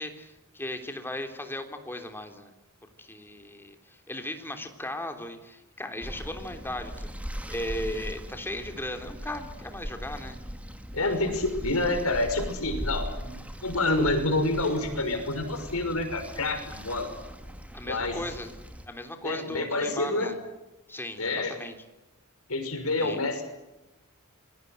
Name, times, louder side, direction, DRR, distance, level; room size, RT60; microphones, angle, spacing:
voice 1, 0.0-2.5 2.8-7.1 7.5-10.4 17.7-18.5 18.9-20.4 20.9-21.7 23.0-23.2, left 1 dB, 10° left, 6 dB, 3.3 m, -37 dB
sound 1, 6.0-18.9, equal, 5° right, 2.4 m, -39 dB
voice 2, 10.9-13.3 13.6-17.1 17.8-18.2 19.2-20.3 21.2-21.5 22.5-23.4, left 2 dB, 70° left, 6 dB, 6.1 m, -28 dB
27.5 x 22.0 x 8.2 m, 0.97 s
head